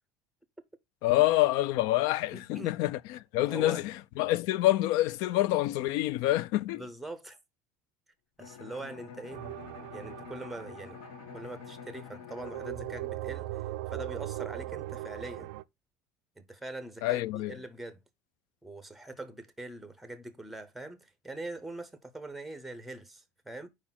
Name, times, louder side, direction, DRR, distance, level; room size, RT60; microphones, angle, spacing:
voice 1, 1.0-6.8 17.0-17.5, left 16 dB, 50° left, 0.3 m, -27 dB
voice 2, 2.3-2.8 3.5-3.8 6.7-7.4 8.4-9.4 9.9-11.0 11.3-15.5 16.4-18.0 18.6-23.7, right 2 dB, ahead, 0.7 m, -43 dB
Bowed string instrument, 8.4-14.1, left 7 dB, 70° left, 1.5 m, -48 dB
sound 1, 9.3-11.7 12.4-15.6, right 16 dB, 70° right, 0.4 m, -39 dB
4.9 x 4.1 x 5.7 m
cardioid pair, 175°, 8 cm